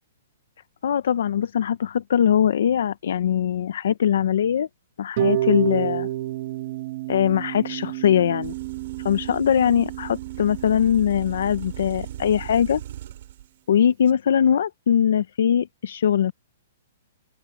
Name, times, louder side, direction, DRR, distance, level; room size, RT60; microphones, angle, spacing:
voice 1, 0.8-4.7 5.0-6.1 7.1-8.5 9.0-12.8 13.7-16.3, left 9 dB, 70° left, 0.9 m, -21 dB
Harp, 5.2-11.2, right 14 dB, 40° right, 1.7 m, -29 dB
sound 1, 8.4-13.5, right 12 dB, 55° right, 2.9 m, -38 dB
open air
hypercardioid pair, 165°, 0 cm